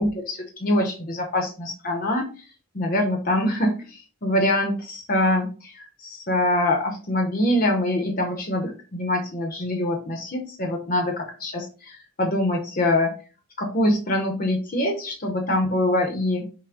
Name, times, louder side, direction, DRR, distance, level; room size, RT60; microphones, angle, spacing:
voice 1, 0.0-2.3 2.7-13.1 13.6-16.5, left 1 dB, 40° left, 3 dB, 0.8 m, -24 dB
5.9 x 2.1 x 3.5 m, 0.35 s
head